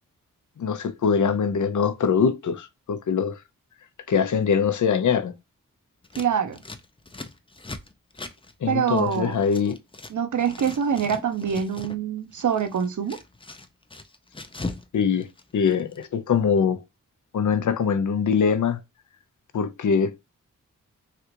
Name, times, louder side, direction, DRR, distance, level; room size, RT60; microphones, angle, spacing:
voice 1, 0.6-3.4 4.1-5.3 8.6-9.8 14.9-15.3 15.5-16.8 17.3-18.8 19.5-20.2, left 6 dB, 60° left, 0.6 m, -23 dB
Scissors, 6.0-10.1 10.4-12.0 12.3-14.9 15.1-16.0, left 3 dB, 15° left, 0.5 m, -39 dB
voice 2, 6.2-6.6 8.7-9.4 10.1-13.2, right 7 dB, 60° right, 0.7 m, -25 dB
3.3 x 2.4 x 2.8 m
cardioid pair, 50°, 34 cm